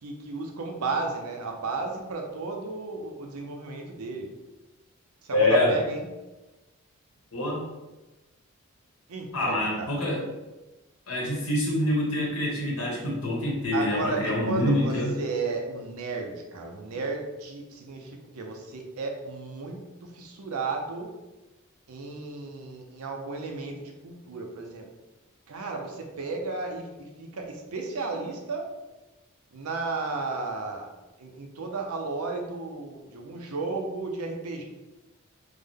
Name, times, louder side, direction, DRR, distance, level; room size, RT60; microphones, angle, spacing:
voice 1, 0.0-4.3 5.2-6.1 9.1-9.9 13.7-21.1 21.9-24.9 25.5-28.7 29.5-30.9 31.2-34.6, right 3 dB, 85° right, 2 dB, 0.6 m, -34 dB
voice 2, 5.3-5.7 7.3-7.6 9.3-10.3 11.1-15.1, left 1 dB, 85° left, -3 dB, 1.3 m, -25 dB
3.5 x 2.1 x 3.5 m, 1.1 s
head